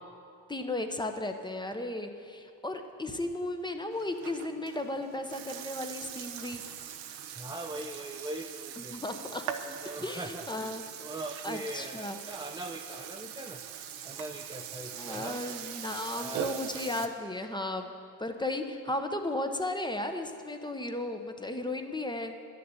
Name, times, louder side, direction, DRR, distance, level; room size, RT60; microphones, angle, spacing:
voice 1, 0.5-6.6 8.8-9.4 10.0-10.8 11.4-12.2 14.9-17.9 18.2-22.4, left 1 dB, 10° left, 6 dB, 1.0 m, -35 dB
Burping eructation, 3.9-17.1, right 9 dB, 80° right, 1.0 m, -42 dB
voice 2, 7.4-9.0 9.6-13.6 14.0-15.4 16.2-16.6, right 1 dB, 10° right, 3 dB, 0.6 m, -41 dB
11.0 x 6.8 x 9.1 m, 2.4 s
supercardioid pair, 75°, 46 cm